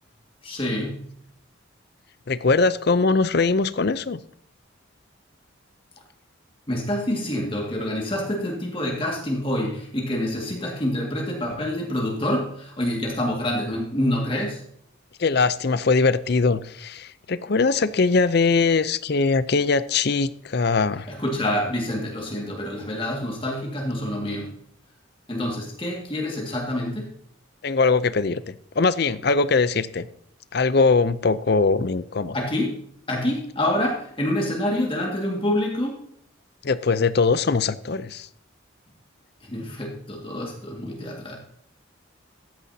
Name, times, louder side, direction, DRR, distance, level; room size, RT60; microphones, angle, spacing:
voice 1, 0.4-1.1 6.7-14.6 21.1-24.6 25.3-27.1 32.3-32.8 33.1-36.0 39.4-41.4, left 1 dB, 25° left, 0 dB, 2.0 m, -27 dB
voice 2, 2.3-4.2 15.2-21.1 27.6-30.1 30.5-32.3 36.6-38.3, left 4 dB, 50° left, 15 dB, 0.5 m, -21 dB
13.5 x 9.8 x 2.8 m, 0.68 s
head